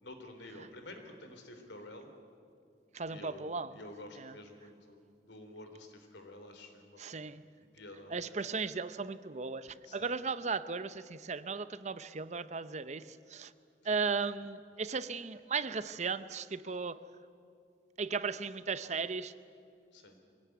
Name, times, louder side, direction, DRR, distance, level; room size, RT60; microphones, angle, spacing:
voice 1, 0.0-2.1 3.1-5.0 5.3-7.0 7.7-8.4 9.8-10.1 13.8-14.0 19.9-20.2, left 1 dB, 85° left, 6 dB, 3.5 m, -50 dB
voice 2, 2.9-3.7 4.2-4.3 7.0-7.4 8.1-13.0 13.3-13.5 13.8-17.0 18.0-19.3, right 4 dB, 40° right, 14 dB, 0.7 m, -36 dB
23.5 x 17.0 x 9.5 m, 2.4 s
head